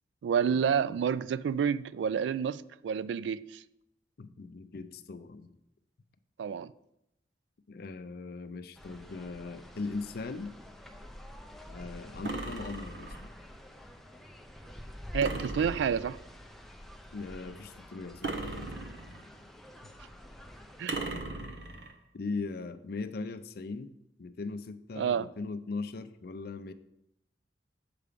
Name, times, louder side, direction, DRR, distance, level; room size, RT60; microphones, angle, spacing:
voice 1, 0.2-3.6 6.4-6.7 15.1-16.2 20.8-21.0 25.0-25.3, right 7 dB, 85° right, 0.3 m, -29 dB
voice 2, 4.2-5.6 7.7-10.6 11.7-13.3 17.1-18.7 19.8-19.9 20.9-21.6 22.1-23.9 24.2-26.7, left 3 dB, 60° left, 0.5 m, -39 dB
sound 1, 8.7-20.9, equal, ahead, 0.5 m, -47 dB
sound 2, 12.2-13.3 15.2-16.3 18.2-19.4 20.9-21.9, right 3 dB, 70° right, 0.8 m, -38 dB
6.8 x 4.8 x 5.0 m
head